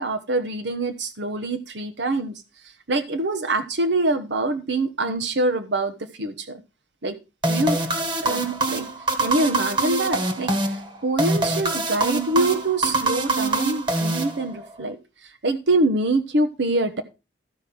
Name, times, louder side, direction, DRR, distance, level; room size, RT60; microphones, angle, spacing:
voice 1, 0.0-6.6 7.0-7.2 7.5-7.8 8.2-8.9 9.2-17.0, right 2 dB, 75° right, 9 dB, 1.0 m, -25 dB
sound 1, 7.4-14.8, right 2 dB, 25° right, 1.5 m, -24 dB
14.0 x 5.0 x 6.1 m, 0.29 s
head